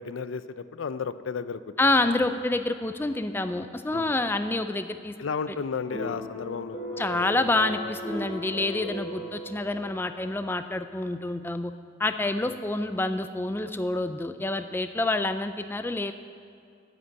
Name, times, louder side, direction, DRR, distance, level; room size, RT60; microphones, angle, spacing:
voice 1, 0.0-1.7 2.0-2.1 3.9-4.2 5.2-7.9 9.2-9.4 12.4-12.6, left 5 dB, 85° left, 14 dB, 0.4 m, -34 dB
voice 2, 1.8-5.1 7.0-11.7 12.0-16.1, left 2 dB, 10° left, 9 dB, 0.3 m, -27 dB
sound 1, 5.9-10.4, equal, 35° left, 2.5 m, -37 dB
9.7 x 8.0 x 8.8 m, 2.5 s
head